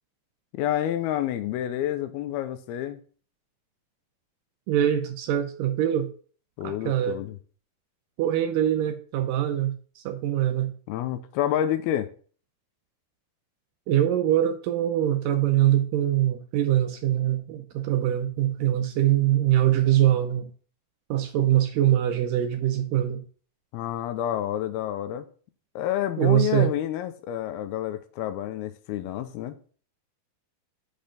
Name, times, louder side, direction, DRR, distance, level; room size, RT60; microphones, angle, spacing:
voice 1, 0.5-3.0 6.6-7.4 10.9-12.1 23.7-25.3 25.8-29.6, left 11 dB, 85° left, 2.6 m, -29 dB
voice 2, 4.7-6.1 6.6-7.2 8.2-10.7 13.9-20.5 21.1-23.2 26.2-26.7, right 12 dB, 80° right, 2.0 m, -23 dB
6.5 x 5.3 x 5.7 m
omnidirectional pair, 4.5 m